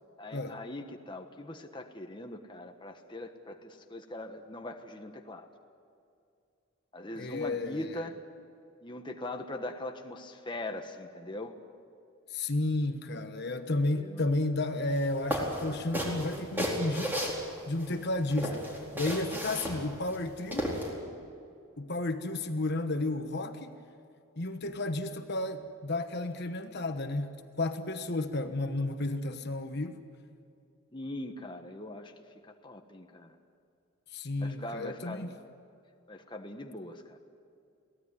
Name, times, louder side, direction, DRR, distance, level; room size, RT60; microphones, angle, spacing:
voice 1, 0.2-5.5 6.9-8.2 8.8-11.5 13.9-14.2 30.9-32.1 32.4-33.4 34.4-35.4 36.1-37.2, left 1 dB, 20° left, 4 dB, 1.3 m, -41 dB
voice 2, 7.2-7.9 12.3-17.1 17.7-20.8 21.8-23.7 24.4-30.0 34.1-35.3, left 2 dB, 50° left, 7 dB, 1.2 m, -32 dB
sound 1, 14.9-15.1 15.3-17.9 18.3-20.9, equal, 10° right, 4.3 m, -33 dB
23.0 x 17.0 x 10.0 m, 2.5 s
head